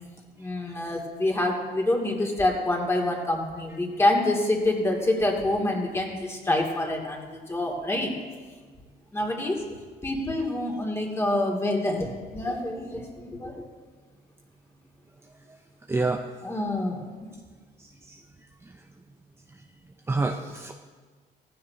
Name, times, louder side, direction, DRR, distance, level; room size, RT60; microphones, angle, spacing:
voice 1, 0.4-8.1 9.1-9.6 10.0-12.1 12.3-13.6 16.4-17.0, left 1 dB, 15° left, 0 dB, 2.7 m, -26 dB
voice 2, 15.9-16.2 17.8-18.2 20.1-20.7, right 3 dB, 15° right, 3 dB, 0.7 m, -28 dB
16.0 x 15.0 x 2.9 m, 1.5 s
cardioid pair, 110°, 17 cm